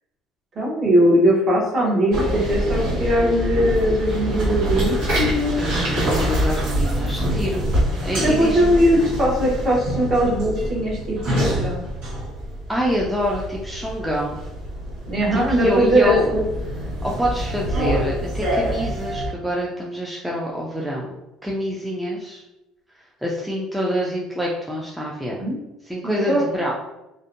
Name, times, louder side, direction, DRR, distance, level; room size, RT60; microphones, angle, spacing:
voice 1, 0.6-5.7 8.2-11.8 15.1-16.4 25.4-25.6 26.0-26.4, equal, 40° right, -3 dB, 0.9 m, -20 dB
sound 1, 2.1-19.3, equal, 75° right, 1.2 m, -25 dB
voice 2, 5.6-7.7 8.0-8.8 12.7-14.4 15.3-16.3 17.0-21.1 21.4-22.4 23.2-25.4 25.8-26.7, equal, 5° right, -4 dB, 0.4 m, -26 dB
2.6 x 2.1 x 2.5 m, 0.95 s
cardioid pair, 120°, 0 cm